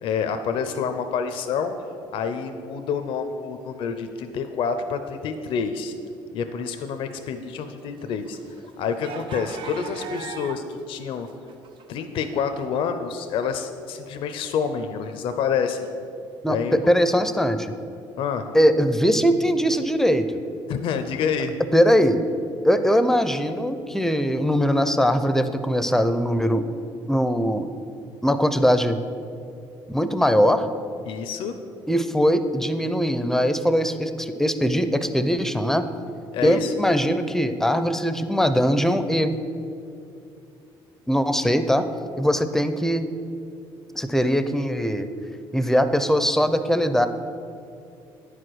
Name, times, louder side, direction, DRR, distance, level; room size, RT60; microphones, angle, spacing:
voice 1, 0.0-1.7 2.1-5.9 6.3-8.4 8.8-11.3 11.9-15.9 16.5-16.9 18.2-18.4 20.7-21.5 31.0-31.5 36.3-36.8, left 6 dB, 70° left, 8 dB, 0.5 m, -28 dB
sound 1, 7.6-10.8 11.1-12.4, right 5 dB, 65° right, 0.6 m, -39 dB
voice 2, 16.4-17.7 18.5-20.4 21.7-22.2 22.6-26.6 27.1-27.7 28.2-29.0 29.9-30.7 31.9-35.9 36.4-39.3 41.1-41.9 42.2-43.1 43.9-45.1 45.5-47.1, equal, 5° left, 10 dB, 0.5 m, -21 dB
9.6 x 4.9 x 6.2 m, 2.6 s
cardioid pair, 95°, 9 cm